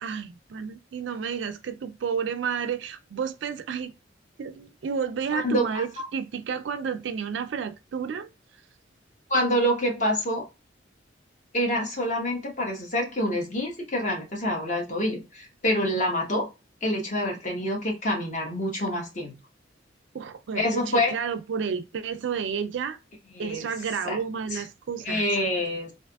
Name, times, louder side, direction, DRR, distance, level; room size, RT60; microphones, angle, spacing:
voice 1, 0.0-3.9 4.4-8.3 20.1-23.0 23.4-25.3, right 6 dB, 75° right, 0.4 m, -31 dB
voice 2, 5.3-6.0 9.3-10.4 11.5-16.5 16.8-19.3 20.5-21.1 23.3-23.7 24.0-24.2 24.5-24.6 25.0-25.9, equal, 40° left, 1.1 m, -26 dB
3.4 x 2.5 x 2.3 m
head